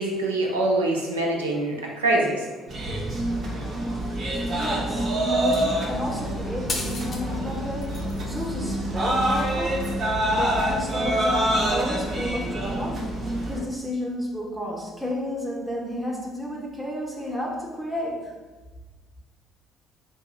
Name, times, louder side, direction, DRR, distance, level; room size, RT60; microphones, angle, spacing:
voice 1, 0.0-2.5, right 2 dB, 80° right, 0 dB, 0.5 m, -24 dB
sound 1, 2.7-13.6, right 1 dB, 45° right, 0.7 m, -26 dB
voice 2, 4.5-7.9 8.3-9.8 10.3-13.0 13.5-18.3, equal, 10° right, -3 dB, 0.8 m, -31 dB
sound 2, 5.4-5.9 6.7-7.2 7.5-8.2 9.2-9.3, left 3 dB, 40° left, 0.7 m, -34 dB
sound 3, 5.9-10.8, left 8 dB, 80° left, 0.4 m, -41 dB
4.6 x 2.7 x 2.3 m, 1.3 s
figure-of-eight pair, 50°, 0 cm